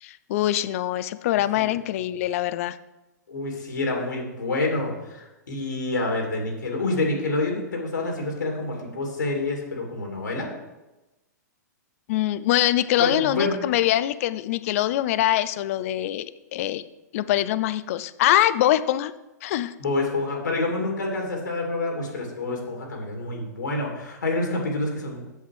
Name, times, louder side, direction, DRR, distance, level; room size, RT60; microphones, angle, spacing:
voice 1, 0.0-2.8 12.1-16.8 17.1-19.1 19.4-19.7, left 13 dB, 50° left, 15 dB, 0.5 m, -23 dB
voice 2, 3.3-10.5 13.0-13.5 19.8-25.2, left 2 dB, 80° left, 1 dB, 2.6 m, -27 dB
8.2 x 7.4 x 4.8 m, 1.0 s
hypercardioid pair, 115°, 10 cm